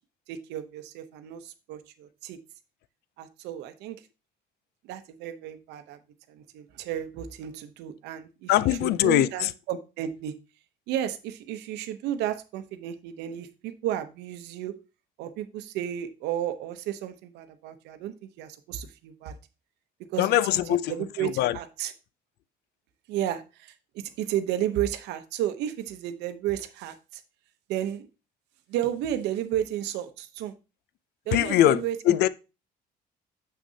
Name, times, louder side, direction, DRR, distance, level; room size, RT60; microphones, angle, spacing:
voice 1, 0.3-2.4 3.2-4.0 4.8-6.0 6.3-10.3 10.9-14.7 15.2-19.4 20.1-20.3 20.7-21.9 23.1-27.2 27.7-28.1 28.7-30.5 31.3-32.3, right 11 dB, 90° right, 0.8 m, -33 dB
voice 2, 8.5-9.5 20.2-20.9 21.2-21.6 31.3-32.3, left 13 dB, 75° left, 0.4 m, -22 dB
6.7 x 6.1 x 2.7 m
cardioid pair, 110°, 17 cm